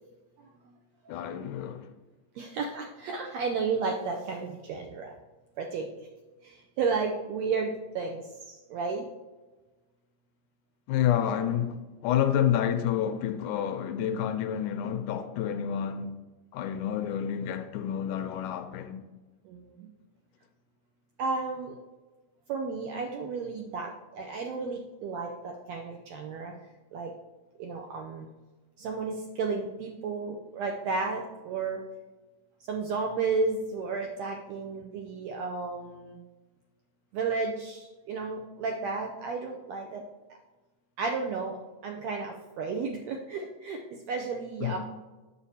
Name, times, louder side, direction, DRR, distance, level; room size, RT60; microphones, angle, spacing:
voice 1, 1.1-1.9 10.9-16.2 16.5-19.0 44.6-44.8, left 9 dB, 80° left, 1.9 m, -29 dB
voice 2, 2.3-5.1 5.6-5.9 6.4-9.1 19.4-19.9 21.2-21.8 22.5-26.5 26.9-27.1 27.6-28.3 28.8-31.8 32.7-36.2 37.1-40.0 41.0-44.8, right 4 dB, 80° right, 1.5 m, -33 dB
9.1 x 6.7 x 2.7 m
omnidirectional pair, 3.7 m